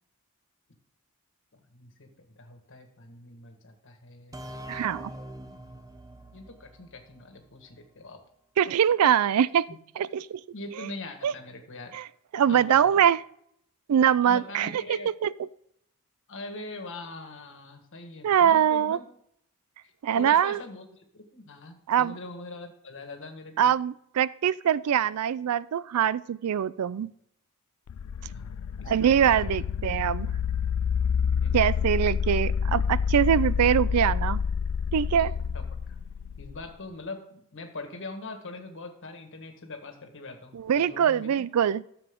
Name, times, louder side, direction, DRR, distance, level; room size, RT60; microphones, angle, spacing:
voice 1, 1.5-4.4 6.3-8.2 9.7-9.8 10.5-12.0 12.5-13.0 14.2-15.1 16.3-19.1 19.8-20.8 21.1-23.7 28.3-29.7 31.2-32.2 35.5-35.6 35.9-36.0 36.4-41.4, left 2 dB, 60° left, 5 dB, 1.7 m, -42 dB
sound 1, 4.3-7.9, right 1 dB, 15° right, 0.6 m, -44 dB
voice 2, 4.7-5.1 8.6-9.7 10.0-10.4 11.2-11.3 11.9-12.0 12.3-13.2 13.9-14.8 15.2-15.3 18.2-19.0 20.0-20.6 21.9-22.1 23.6-27.1 28.9-30.3 31.5-34.4 34.9-35.3 40.5-41.9, right 9 dB, 85° right, 20 dB, 0.4 m, -23 dB
sound 2, 27.9-36.7, left 6 dB, 90° left, 0.4 m, -28 dB
13.5 x 7.0 x 3.7 m, 0.72 s
head